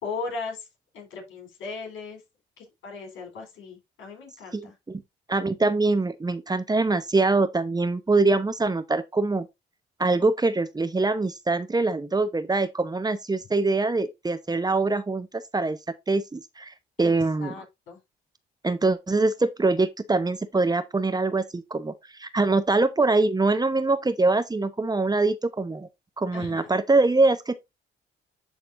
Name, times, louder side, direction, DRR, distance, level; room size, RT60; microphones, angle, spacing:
voice 1, 0.0-0.7 0.9-2.2 2.6-4.7 17.0-17.1 17.4-18.0 26.3-26.7, left 4 dB, 80° left, 4.1 m, -37 dB
voice 2, 4.5-5.0 5.3-9.5 10.0-15.8 16.1-17.5 18.6-21.9 22.2-25.9 26.2-27.6, right 3 dB, 20° right, 0.9 m, -24 dB
11.5 x 4.1 x 2.6 m
cardioid pair, 90°, 20 cm